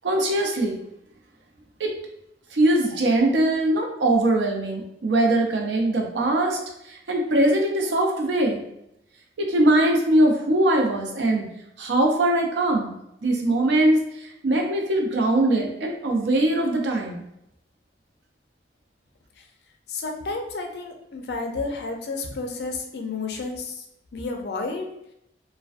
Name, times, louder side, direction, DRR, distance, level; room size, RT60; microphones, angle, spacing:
voice 1, 0.0-0.8 1.8-1.9 2.5-6.6 6.8-8.6 9.4-11.5 11.8-12.9 13.2-17.2, right 1 dB, 85° right, 1 dB, 0.5 m, -21 dB
voice 2, 19.9-23.9 24.1-24.9, left 3 dB, 65° left, 4 dB, 0.4 m, -31 dB
2.4 x 2.2 x 2.4 m, 0.81 s
head